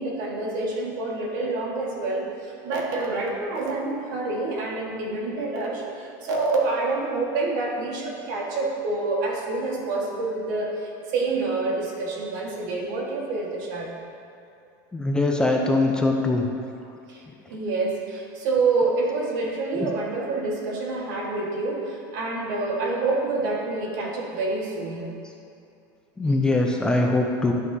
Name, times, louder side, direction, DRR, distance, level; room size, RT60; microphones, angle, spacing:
voice 1, 0.0-13.9 17.1-25.1, right 3 dB, 70° right, -2 dB, 1.5 m, -27 dB
voice 2, 14.9-16.5 19.8-19.9 26.2-27.5, left 2 dB, 10° left, 1 dB, 0.4 m, -22 dB
11.0 x 6.3 x 2.7 m, 2.6 s
supercardioid pair, 160°, 11 cm